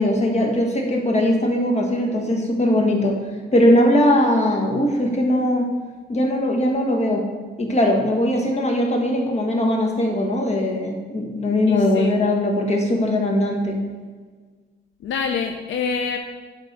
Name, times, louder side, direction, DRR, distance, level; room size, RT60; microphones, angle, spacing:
voice 1, 0.0-3.1 3.5-5.7 6.1-7.2 7.6-13.8, left 1 dB, 35° left, 1 dB, 1.5 m, -20 dB
voice 2, 11.7-12.1 15.0-16.2, left 6 dB, 75° left, 4 dB, 0.6 m, -26 dB
9.0 x 3.7 x 5.9 m, 1.5 s
cardioid pair, 90°, 20 cm